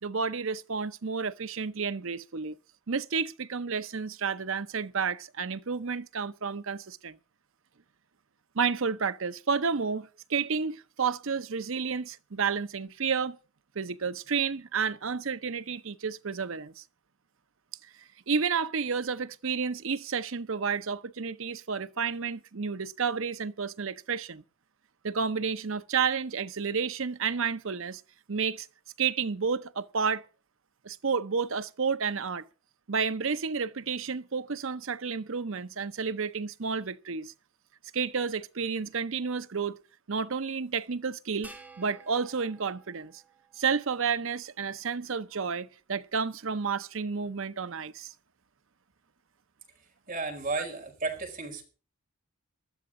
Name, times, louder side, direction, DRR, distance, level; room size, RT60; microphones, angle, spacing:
voice 1, 0.0-2.6 2.9-7.2 8.5-13.4 13.7-16.8 17.8-24.4 25.0-28.0 28.3-28.7 29.0-30.3 30.8-32.5 32.9-37.3 37.9-39.8 40.1-43.2 43.6-48.1, right 5 dB, 60° right, 0.7 m, -31 dB
sound 1, 41.4-44.0, right 3 dB, 5° right, 3.2 m, -52 dB
voice 2, 50.1-51.7, right 3 dB, 40° right, 4.5 m, -33 dB
20.0 x 13.0 x 3.8 m
head